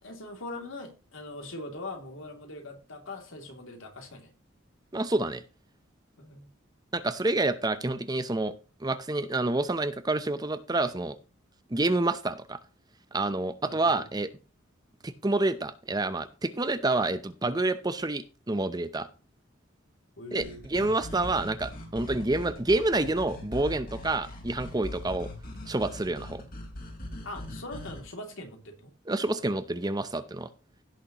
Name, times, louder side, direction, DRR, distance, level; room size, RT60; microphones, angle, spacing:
voice 1, 0.0-4.3 6.2-6.5 13.6-14.1 20.2-20.7 27.2-28.9, left 2 dB, 75° left, 2.7 m, -41 dB
voice 2, 4.9-5.4 6.9-8.5 8.8-11.2 11.7-12.6 13.1-14.3 15.0-19.1 20.3-25.3 25.7-26.4 29.1-30.5, right 2 dB, 20° right, 0.7 m, -28 dB
sound 1, 20.4-28.0, left 1 dB, 45° left, 3.4 m, -41 dB
16.5 x 6.5 x 3.0 m
head